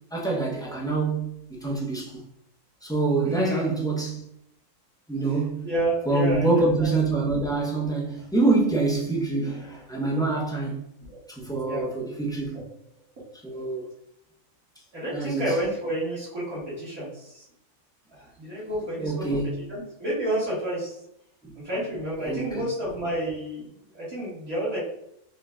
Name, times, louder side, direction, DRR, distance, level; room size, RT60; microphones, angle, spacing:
voice 1, 0.1-1.3 1.6-2.2 2.8-4.2 5.1-5.6 6.1-10.8 11.3-12.6 13.4-13.9 15.1-15.6 19.0-19.7 21.4-21.5 22.2-22.6, right 3 dB, 5° left, 0.7 m, -26 dB
voice 2, 3.2-3.8 5.6-6.9 11.1-11.2 11.6-11.8 12.5-12.6 14.9-17.4 18.1-19.4 19.7-20.9 21.6-23.6 23.9-24.8, right 1 dB, 65° right, 2.1 m, -30 dB
4.7 x 2.5 x 3.4 m
omnidirectional pair, 1.6 m